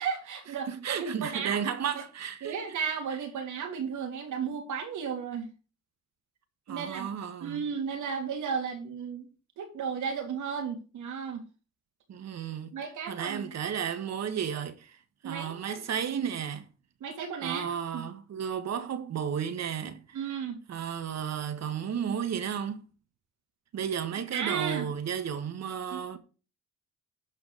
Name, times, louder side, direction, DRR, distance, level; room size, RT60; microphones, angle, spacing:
voice 1, 0.0-1.6 2.4-5.5 6.7-7.1 7.4-9.3 9.6-11.4 12.7-13.5 15.2-15.8 17.0-18.0 20.1-20.6 24.3-24.9 25.9-26.2, right 6 dB, 75° right, 3.4 m, -34 dB
voice 2, 0.7-2.6 6.7-7.6 12.1-12.7 13.1-15.0 15.2-16.7 17.4-20.2 20.7-22.8 23.7-26.2, right 8 dB, 60° right, 1.6 m, -33 dB
12.0 x 5.1 x 6.5 m
cardioid pair, 90°, 30 cm